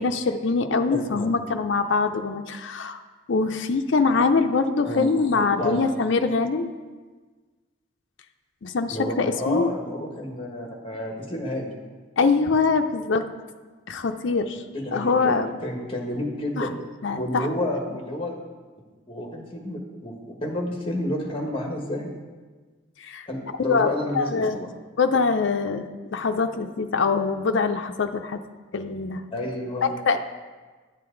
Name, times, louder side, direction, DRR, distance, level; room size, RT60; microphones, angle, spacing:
voice 1, 0.0-3.0 3.3-6.7 8.6-9.7 12.2-13.3 13.9-14.6 14.9-15.5 16.6-16.7 17.0-17.5 23.0-23.3 23.7-23.9 24.1-24.6 25.0-28.4 28.7-29.2 30.0-30.2, left 4 dB, 60° left, 6 dB, 0.5 m, -23 dB
voice 2, 0.9-1.3 4.8-5.8 8.9-11.7 14.7-15.3 15.6-16.7 17.1-18.3 19.1-22.1 23.3-24.7 29.3-29.9, left 1 dB, 25° left, 1 dB, 1.4 m, -30 dB
11.0 x 7.5 x 3.8 m, 1.4 s
head